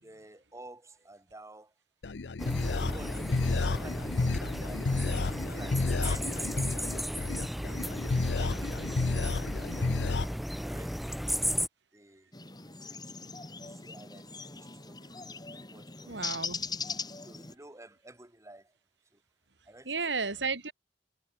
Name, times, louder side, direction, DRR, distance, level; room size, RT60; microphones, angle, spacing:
voice 1, 0.0-1.7 2.9-3.3 3.7-4.9 5.3-7.9 8.3-10.2 10.6-11.3 11.9-12.3 12.6-16.2 17.2-18.7 19.1-19.2 19.7-19.9 20.2-20.3, right 1 dB, 15° right, 5.3 m, -53 dB
sound 1, 2.0-10.3, left 3 dB, 75° left, 0.7 m, -31 dB
sound 2, 2.4-11.7, equal, ahead, 1.2 m, -35 dB
sound 3, 12.3-17.5, left 5 dB, 25° left, 5.5 m, -40 dB
voice 2, 16.1-16.7 19.8-20.7, right 4 dB, 90° right, 3.3 m, -33 dB
head